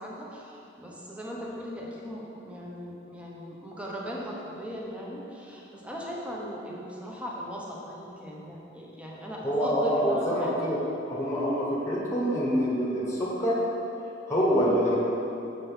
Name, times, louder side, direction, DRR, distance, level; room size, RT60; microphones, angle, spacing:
voice 1, 0.0-10.8, equal, 5° right, -4 dB, 1.0 m, -39 dB
voice 2, 9.4-10.8 11.1-13.6 14.3-15.0, equal, 15° left, -4 dB, 1.3 m, -26 dB
6.9 x 5.3 x 5.6 m, 2.8 s
head